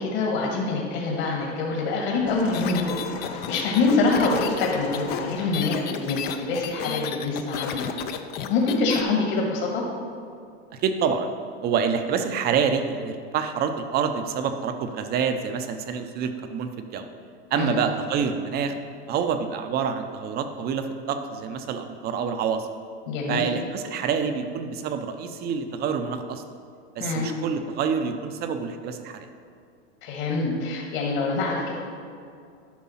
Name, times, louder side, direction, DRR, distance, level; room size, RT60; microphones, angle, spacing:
voice 1, 0.0-3.0 3.3-8.0 8.5-9.8 17.5-17.8 23.1-23.5 27.0-27.3 30.0-31.8, left 3 dB, 50° left, -2 dB, 1.9 m, -25 dB
sound 1, 2.3-6.4 7.3-7.4, left 5 dB, 70° left, 1.3 m, -38 dB
speak and math on craaaaack, 2.5-9.0, left 9 dB, 30° left, 0.5 m, -33 dB
voice 2, 10.7-11.3 11.6-17.1 17.5-18.7 19.1-22.7 23.3-26.4 27.0-29.3, right 6 dB, 30° right, 8 dB, 0.7 m, -27 dB
10.5 x 5.3 x 5.7 m, 2.4 s
hypercardioid pair, 130°, 33 cm